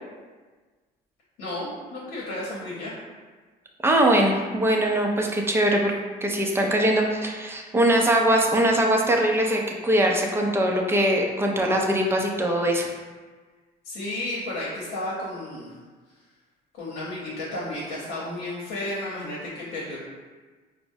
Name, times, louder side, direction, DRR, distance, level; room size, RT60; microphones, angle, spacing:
voice 1, 1.4-2.9 13.8-15.7 16.8-20.0, left 1 dB, 80° left, -6 dB, 0.8 m, -32 dB
voice 2, 3.8-5.9 6.2-12.9, right 1 dB, 15° right, 1 dB, 0.4 m, -22 dB
4.4 x 2.0 x 2.6 m, 1.4 s
cardioid pair, 110°, 17 cm